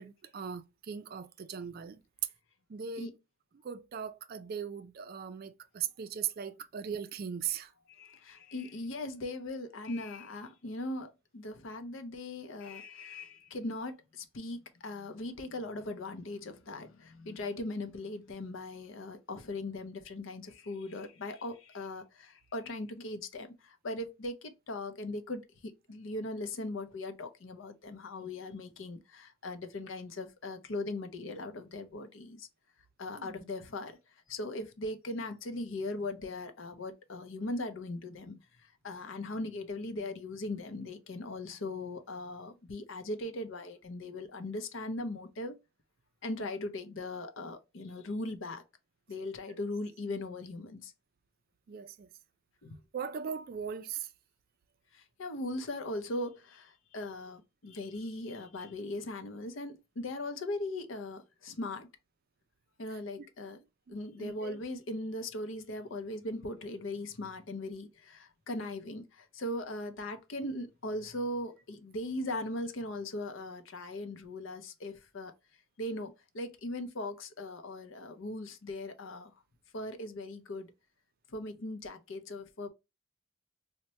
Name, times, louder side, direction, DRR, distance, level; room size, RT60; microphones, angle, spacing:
voice 1, 0.0-2.0 2.7-3.1 3.6-7.7 33.2-33.3 51.7-52.1 52.9-54.1 63.2-63.3 63.9-64.6, right 7 dB, 45° right, 0.3 m, -39 dB
voice 2, 7.9-32.5 33.0-34.0 34.3-45.5 46.2-48.6 49.1-50.9 52.6-52.8 54.9-61.9 62.8-63.6 63.9-75.3 75.8-79.3 79.7-80.7 81.3-82.7, left 2 dB, 65° left, 0.6 m, -39 dB
4.2 x 2.1 x 2.7 m
head